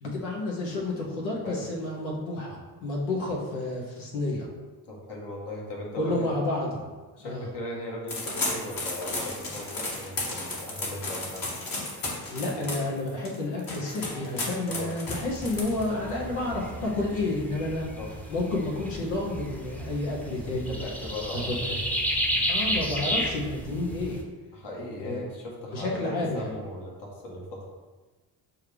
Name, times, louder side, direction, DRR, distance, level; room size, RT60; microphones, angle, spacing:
voice 1, 0.0-4.5 6.0-6.9 7.2-7.5 12.1-17.9 18.3-20.7 21.5-21.8 22.5-24.2 25.0-25.3 25.7-26.5, left 2 dB, 85° left, -2 dB, 1.1 m, -30 dB
voice 2, 4.9-6.3 7.2-11.6 12.4-12.9 14.7-14.9 18.0-18.1 20.6-21.8 24.5-27.7, left 1 dB, 60° left, -2 dB, 1.4 m, -38 dB
sound 1, 8.1-16.1, left 2 dB, 45° left, 1.3 m, -34 dB
sound 2, 15.1-24.2, equal, 5° left, 0.7 m, -32 dB
6.5 x 2.3 x 3.3 m, 1.3 s
hypercardioid pair, 55°, 47 cm